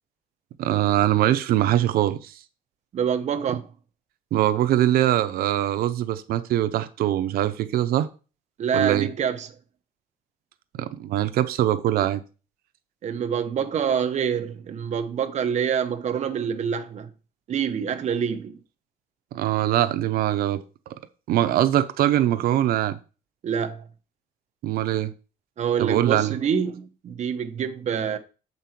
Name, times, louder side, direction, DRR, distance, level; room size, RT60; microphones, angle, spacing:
voice 1, 0.6-2.3 4.3-8.1 8.7-9.1 10.8-12.2 19.3-20.6 21.3-23.0 24.6-25.1 25.8-26.4, right 13 dB, 80° right, 0.8 m, -22 dB
voice 2, 2.9-3.6 8.6-9.5 13.0-17.1 17.5-18.6 23.4-23.9 25.6-28.2, right 7 dB, 50° right, 1.0 m, -26 dB
7.7 x 5.5 x 4.4 m
cardioid pair, 125°, 15 cm